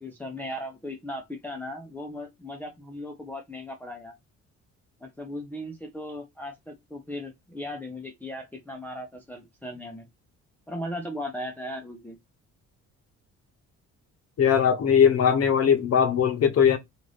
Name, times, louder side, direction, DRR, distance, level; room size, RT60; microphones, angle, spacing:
voice 1, 0.0-4.1 5.0-10.1 10.7-12.2, left 1 dB, 5° left, 0.6 m, -37 dB
voice 2, 14.4-16.8, left 7 dB, 55° left, 0.8 m, -20 dB
2.5 x 2.5 x 3.2 m
cardioid pair, 90°, 30 cm